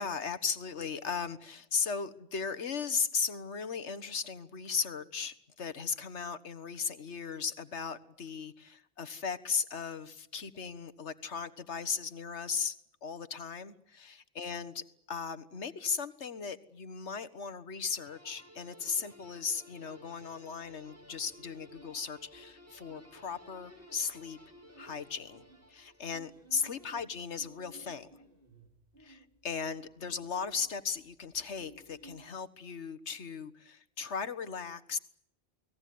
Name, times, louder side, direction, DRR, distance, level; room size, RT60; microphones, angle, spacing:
voice 1, 0.0-12.8 13.0-24.4 24.8-25.4 25.7-28.1 29.0-35.0, left 6 dB, 90° left, 13 dB, 1.7 m, -37 dB
sound 1, 18.0-26.3, equal, 15° right, 6.4 m, -56 dB
sound 2, 20.6-32.2, right 2 dB, 55° right, 4.7 m, -59 dB
29.5 x 20.0 x 9.5 m, 0.74 s
omnidirectional pair, 1.1 m